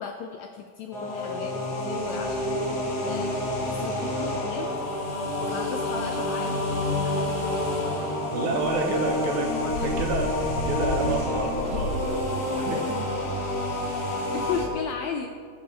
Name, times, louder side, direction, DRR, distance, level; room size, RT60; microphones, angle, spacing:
voice 1, 0.0-4.7 5.1-7.7 8.9-9.3 9.6-9.9 14.0-15.3, left 6 dB, 80° left, 4 dB, 1.6 m, -36 dB
sound 1, 0.9-14.6, left 1 dB, 40° left, 1.7 m, -28 dB
sound 2, 4.9-12.6, left 3 dB, 65° left, 2.5 m, -36 dB
voice 2, 8.3-9.5 9.8-13.0, right 3 dB, 70° right, 1 dB, 2.5 m, -29 dB
19.5 x 7.0 x 3.4 m, 2.1 s
omnidirectional pair, 3.7 m